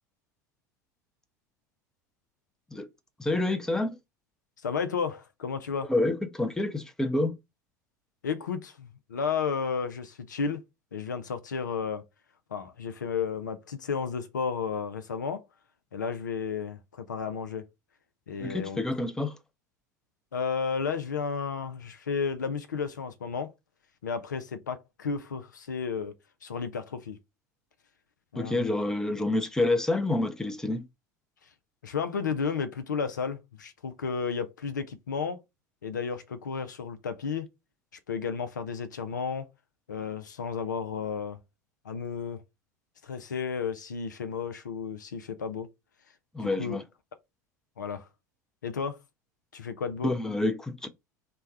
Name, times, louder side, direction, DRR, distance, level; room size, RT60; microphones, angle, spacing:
voice 1, 3.2-4.0 5.9-7.3 18.4-19.4 28.4-30.8 46.3-46.8 50.0-50.9, left 2 dB, 5° left, 0.6 m, -28 dB
voice 2, 4.6-5.9 8.2-10.6 10.9-12.0 12.5-15.4 15.9-17.7 18.3-18.8 20.3-23.5 24.0-26.2 26.4-27.2 28.3-28.7 31.8-35.4 35.8-37.5 38.1-39.5 39.9-41.4 41.8-42.4 43.0-45.7 46.4-46.8 47.8-48.1 48.6-49.0 49.5-50.1, left 6 dB, 80° left, 0.5 m, -32 dB
3.3 x 2.2 x 4.1 m
figure-of-eight pair, 80°, 10 cm